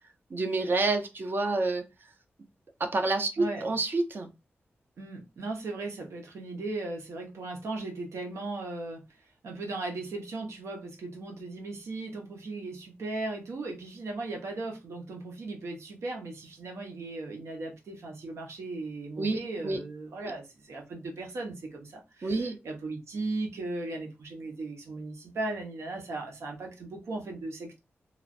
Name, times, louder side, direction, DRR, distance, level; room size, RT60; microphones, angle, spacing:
voice 1, 0.3-1.9 2.8-4.3 19.2-19.8 22.2-22.6, right 3 dB, 50° right, 0.6 m, -28 dB
voice 2, 5.0-27.8, right 2 dB, 90° right, 0.9 m, -37 dB
3.1 x 2.4 x 2.5 m
wide cardioid pair, 135°, 5 cm